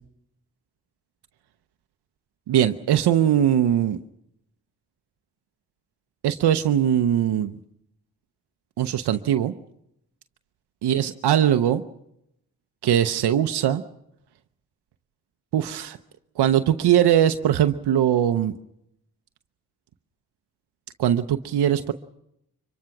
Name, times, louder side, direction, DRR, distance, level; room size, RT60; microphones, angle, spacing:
voice 1, 2.5-4.0 6.2-7.6 8.8-9.5 10.8-11.8 12.8-13.8 15.5-16.0 16.4-18.5 21.0-21.9, right 10 dB, 85° right, 8 dB, 0.8 m, -21 dB
25.0 x 22.5 x 5.9 m, 0.79 s
cardioid pair, 45°, 39 cm